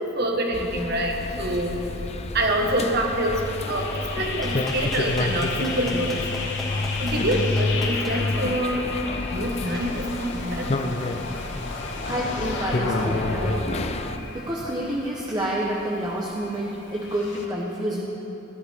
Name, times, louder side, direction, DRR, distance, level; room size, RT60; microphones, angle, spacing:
voice 1, 0.0-1.8 2.3-3.4 3.7-3.9 4.2-6.2 7.0-8.9 9.3-10.9, right 1 dB, 55° right, 1 dB, 1.5 m, -26 dB
sound 1, 0.5-14.2, left 2 dB, 30° left, 0.5 m, -29 dB
sound 2, 1.0-17.4, left 3 dB, 65° left, 1.0 m, -35 dB
Clapping, 4.4-8.1 9.7-9.8, equal, ahead, 2.1 m, -38 dB
voice 2, 12.0-13.9 14.3-18.1, right 1 dB, 20° right, -3 dB, 1.0 m, -28 dB
16.0 x 11.5 x 3.6 m, 3.0 s
head